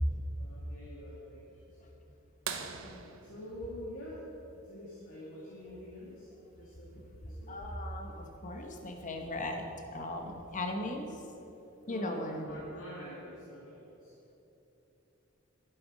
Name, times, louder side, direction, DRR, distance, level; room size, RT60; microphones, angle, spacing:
voice 1, 0.4-1.9 3.3-4.2 4.5-6.3 6.5-7.5 11.9-14.1, left 1 dB, 85° left, -7 dB, 2.2 m, -46 dB
sound 1, 2.5-4.9 6.8-6.9 9.2-9.3 11.0-11.2 12.0-12.1, right 6 dB, 90° right, 0.8 m, -43 dB
voice 2, 2.8-3.2 6.9-7.0 7.5-11.2 11.9-12.6, left 1 dB, 40° left, 3 dB, 1.1 m, -38 dB
12.0 x 7.6 x 5.1 m, 3.0 s
head